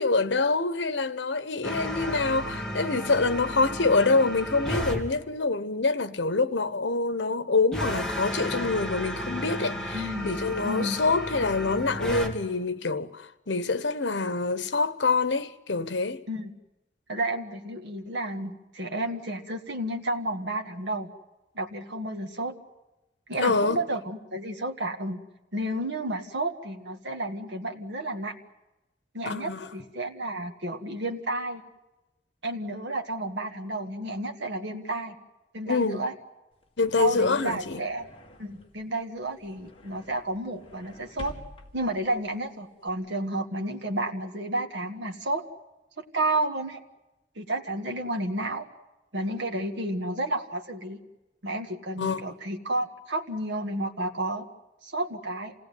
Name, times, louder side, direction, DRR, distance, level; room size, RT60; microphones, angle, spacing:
voice 1, 0.0-16.2 23.4-23.8 29.2-29.7 35.7-36.0 36.8-37.8 52.0-52.2, left 3 dB, 85° left, 1.1 m, -26 dB
sound 1, 1.6-5.0 7.7-12.3, equal, 5° left, 2.5 m, -33 dB
voice 2, 9.9-10.3 10.6-11.0 16.3-16.5 17.1-21.1 21.6-22.5 23.3-25.2 25.5-28.3 29.1-31.6 32.4-35.2 35.5-36.1 37.0-38.0 38.4-41.3 41.7-45.4 46.0-46.8 47.4-48.6 49.1-51.0 51.4-54.5 54.8-55.5, right 1 dB, 80° right, 1.8 m, -31 dB
sound 2, 36.5-42.9, left 1 dB, 30° left, 2.1 m, -49 dB
27.5 x 18.0 x 9.4 m
head